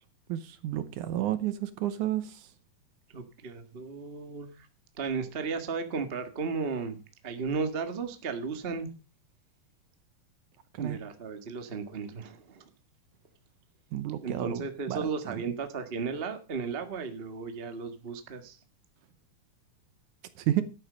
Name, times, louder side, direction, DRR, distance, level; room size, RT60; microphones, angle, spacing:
voice 1, 0.3-2.5 10.7-11.0 13.9-15.4 20.4-20.6, right 13 dB, 75° right, 2.1 m, -31 dB
voice 2, 3.1-4.7 5.0-8.9 10.8-12.7 14.2-18.6, right 5 dB, 45° right, 0.7 m, -35 dB
12.5 x 8.9 x 5.1 m
omnidirectional pair, 4.0 m